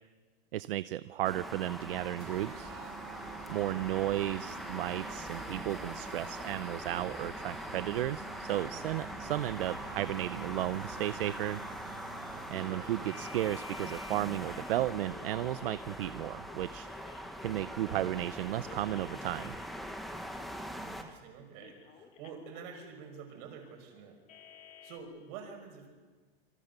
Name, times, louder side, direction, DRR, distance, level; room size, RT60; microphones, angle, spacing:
voice 1, 0.5-2.7 3.5-11.6 12.5-16.9 17.4-19.6, right 14 dB, 60° right, 16 dB, 0.7 m, -34 dB
sound 1, 1.2-21.0, equal, ahead, 1.1 m, -42 dB
sound 2, 2.2-13.6, right 11 dB, 85° right, 1.6 m, -49 dB
voice 2, 3.7-4.1 12.6-13.0 20.8-24.2 24.8-25.9, right 6 dB, 35° right, 5 dB, 5.3 m, -48 dB
sound 3, 7.2-18.1 18.6-21.0 21.6-25.0, left 5 dB, 20° left, 2.3 m, -56 dB
27.5 x 23.5 x 6.7 m, 1.4 s
supercardioid pair, 170°, 32 cm